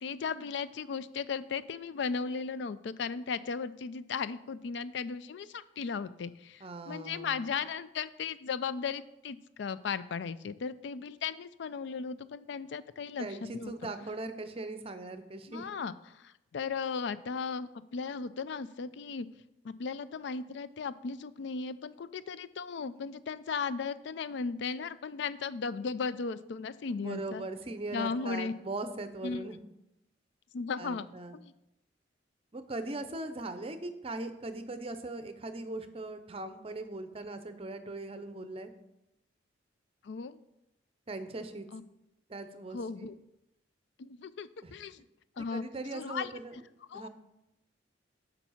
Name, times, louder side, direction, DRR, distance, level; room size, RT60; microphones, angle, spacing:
voice 1, 0.0-13.9 15.5-19.3 19.6-27.4 27.9-28.5 29.2-29.5 30.5-31.1 31.3-31.5 40.0-40.4 41.7-41.8 42.7-43.1 44.0-45.0 45.4-45.6 45.9-46.3 46.9-47.1, left 5 dB, 70° left, 15 dB, 0.4 m, -36 dB
voice 2, 6.6-7.5 13.2-15.7 27.0-29.6 30.8-31.4 32.5-38.7 41.1-41.7 42.3-43.1 44.6-44.7 45.4-46.6 46.9-47.1, right 2 dB, 30° right, 10 dB, 0.6 m, -40 dB
7.3 x 5.3 x 5.6 m, 0.89 s
head